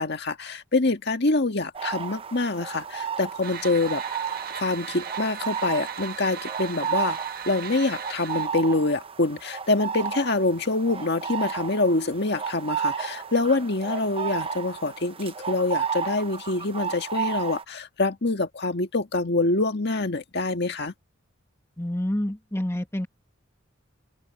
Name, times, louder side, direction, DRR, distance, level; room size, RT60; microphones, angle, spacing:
voice 1, 0.0-4.0 4.5-7.2 7.5-20.9, left 2 dB, 55° left, 1.8 m, -25 dB
sound 1, 1.7-17.6, right 7 dB, 25° right, 0.7 m, -33 dB
sound 2, 3.4-8.5, right 7 dB, 45° right, 1.4 m, -37 dB
voice 2, 21.8-23.1, left 1 dB, 15° left, 1.5 m, -28 dB
open air
head